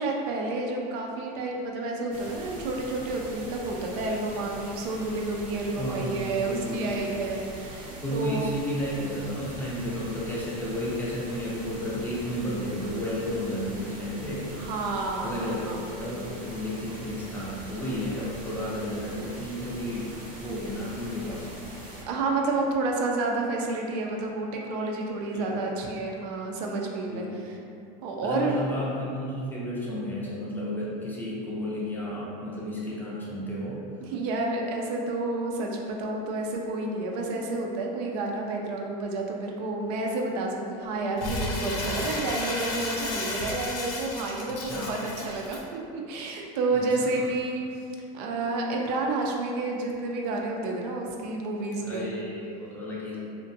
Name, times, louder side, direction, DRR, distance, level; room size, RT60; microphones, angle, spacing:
voice 1, 0.0-8.6 14.5-15.8 22.1-27.6 28.0-28.6 34.0-47.6 48.1-52.1, right 2 dB, 75° right, 0 dB, 0.4 m, -30 dB
sound 1, 2.1-22.0, right 1 dB, 45° right, 0.7 m, -42 dB
voice 2, 5.8-6.9 8.0-14.5 15.2-21.5 25.3-25.7 27.1-27.4 28.2-33.8 44.4-44.9 46.7-46.8 51.8-53.2, equal, 10° left, -7 dB, 0.5 m, -32 dB
Crumpling crinkling, 41.2-45.6, left 2 dB, 65° left, 0.5 m, -33 dB
2.5 x 2.1 x 2.6 m, 2.5 s
supercardioid pair, 120°, 20 cm